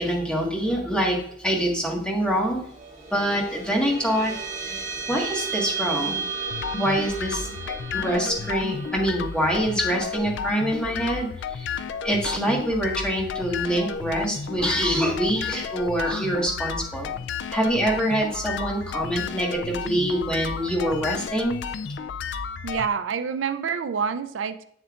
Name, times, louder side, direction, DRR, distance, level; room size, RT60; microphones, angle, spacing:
voice 1, 0.0-2.6 3.1-6.2 6.7-7.5 7.9-11.7 12.0-17.2 17.5-21.8, equal, 5° left, -2 dB, 1.6 m, -25 dB
sound 1, 2.4-13.2, right 5 dB, 40° right, 2.4 m, -35 dB
sound 2, 6.5-22.9, left 6 dB, 65° left, 0.4 m, -32 dB
voice 2, 22.6-24.6, right 6 dB, 75° right, 11 dB, 0.4 m, -27 dB
7.9 x 7.2 x 2.5 m, 0.68 s
head